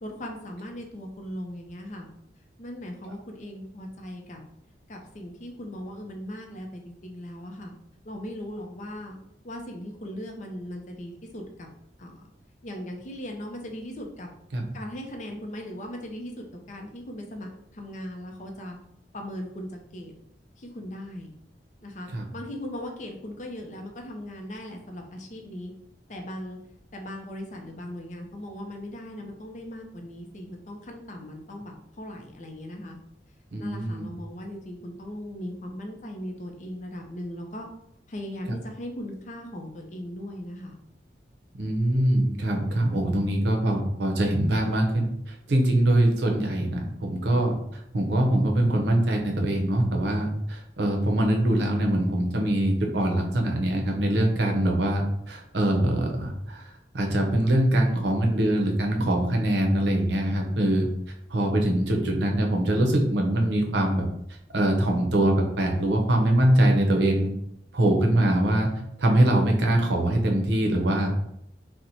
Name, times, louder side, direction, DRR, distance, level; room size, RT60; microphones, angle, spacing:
voice 1, 0.0-2.1 2.6-4.4 4.9-7.7 8.0-9.1 9.4-11.7 12.0-12.2 12.6-14.3 14.7-18.8 19.1-20.1 20.6-21.3 21.8-25.7 26.1-26.6 26.9-33.0 33.6-37.7 38.1-40.8, left 1 dB, 40° left, 2 dB, 0.5 m, -38 dB
voice 2, 33.5-34.1 41.6-47.5 47.9-60.9 61.3-64.1 64.5-67.3 67.7-68.7 69.0-71.2, right 1 dB, 75° right, 2 dB, 0.6 m, -23 dB
4.2 x 2.1 x 2.6 m, 0.77 s
head